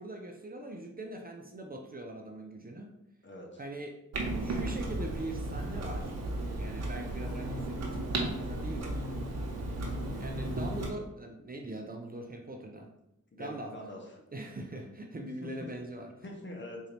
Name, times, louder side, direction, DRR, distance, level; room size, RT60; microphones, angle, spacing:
voice 1, 0.0-2.9 3.6-3.9 4.4-6.2 6.6-9.0 10.2-12.9 13.4-13.7 14.3-16.1, right 1 dB, 30° right, 2 dB, 0.5 m, -41 dB
voice 2, 3.2-3.6 9.5-9.8 13.3-14.0 15.4-15.5 16.2-16.8, left 1 dB, 40° left, 0 dB, 1.0 m, -44 dB
Clock, 4.1-10.9, right 1 dB, 60° right, 0.9 m, -34 dB
3.9 x 2.7 x 3.3 m, 0.87 s
cardioid pair, 60°, 30 cm